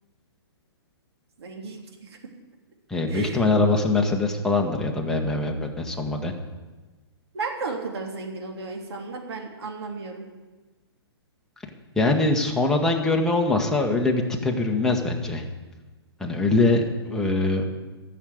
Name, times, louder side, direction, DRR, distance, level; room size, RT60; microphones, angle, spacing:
voice 1, 1.4-2.2 3.1-3.4 7.3-10.3, right 4 dB, 70° right, 1 dB, 3.1 m, -34 dB
voice 2, 2.9-6.3 11.9-15.4 16.2-17.6, left 2 dB, 5° left, 0 dB, 1.5 m, -23 dB
14.0 x 6.6 x 9.4 m, 1.3 s
hypercardioid pair, 125°, 14 cm